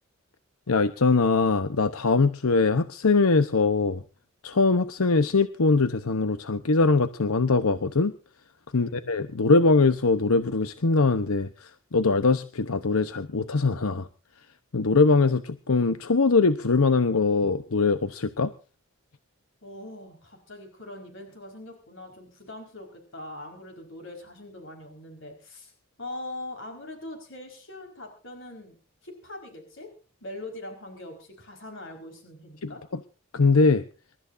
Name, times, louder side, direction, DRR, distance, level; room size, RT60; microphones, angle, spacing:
voice 1, 0.7-4.0 4.4-8.1 8.7-14.1 14.7-18.5 32.6-33.0 33.3-33.8, left 3 dB, 85° left, 10 dB, 0.9 m, -22 dB
voice 2, 8.7-9.0 19.6-25.7 26.0-28.8 29.0-29.9 30.2-32.8, left 1 dB, 60° left, 3 dB, 4.8 m, -42 dB
26.5 x 13.5 x 2.6 m, 0.35 s
head